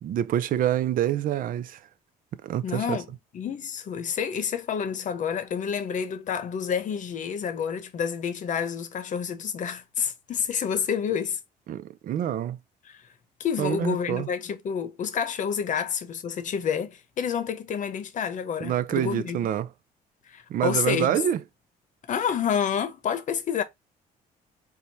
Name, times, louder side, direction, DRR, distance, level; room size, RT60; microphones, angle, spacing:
voice 1, 0.0-1.8 2.4-3.0 11.7-12.6 13.6-14.3 18.6-19.7 20.5-21.4, right 11 dB, 55° right, 0.5 m, -26 dB
voice 2, 2.6-3.1 3.3-11.4 12.9-13.0 13.4-19.4 20.3-21.2 22.1-23.6, left 7 dB, 50° left, 0.9 m, -29 dB
4.6 x 2.2 x 4.0 m
cardioid pair, 110°, 17 cm